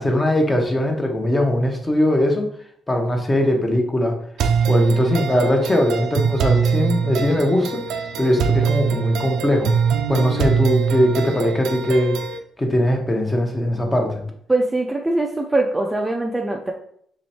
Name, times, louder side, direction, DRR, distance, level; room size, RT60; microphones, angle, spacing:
voice 1, 0.0-2.5 2.9-4.1 4.7-7.8 8.2-9.7 10.1-12.2 12.6-14.2, left 1 dB, 20° left, 3 dB, 0.8 m, -20 dB
sound 1, 4.4-12.4, right 6 dB, 85° right, 0.4 m, -22 dB
voice 2, 14.5-16.7, right 2 dB, 10° right, 2 dB, 0.4 m, -22 dB
3.1 x 3.0 x 4.2 m, 0.66 s
cardioid pair, 90°, 0 cm